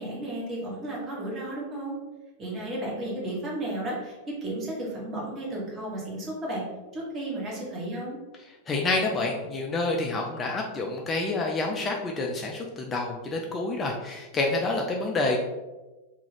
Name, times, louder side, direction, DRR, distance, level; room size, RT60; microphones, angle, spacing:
voice 1, 0.0-2.0 2.4-6.6 6.9-8.2, right 1 dB, 25° right, -3 dB, 1.0 m, -33 dB
voice 2, 8.7-15.4, left 2 dB, 20° left, 0 dB, 0.3 m, -28 dB
2.4 x 2.3 x 3.2 m, 1.1 s
figure-of-eight pair, 90°, 0 cm